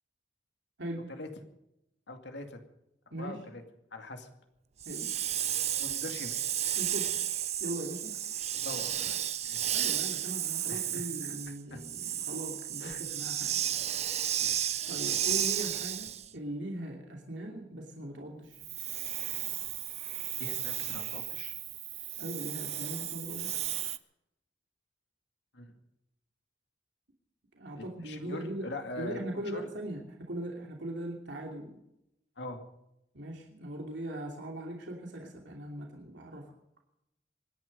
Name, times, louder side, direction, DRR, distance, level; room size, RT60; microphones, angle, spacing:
voice 1, 2.1-2.6 3.2-3.6 3.9-4.3 5.8-6.4 8.5-9.2 9.4-9.7 10.7-11.3 11.7-11.8 12.8-13.1 14.4-14.6 14.9-15.4 20.4-21.6 25.5-25.7 27.8-29.2 29.5-29.6 32.4-32.6, left 2 dB, 65° left, 5 dB, 2.3 m, -43 dB
Hiss, 4.8-16.3 18.6-24.0, right 11 dB, 35° right, 0.6 m, -33 dB
voice 2, 6.8-7.2 7.6-8.2 9.7-13.6 14.9-18.6 22.2-23.5 27.5-28.7 29.0-31.8 33.1-36.5, right 1 dB, 75° right, 0 dB, 2.9 m, -40 dB
24.5 x 11.0 x 5.4 m, 0.85 s
head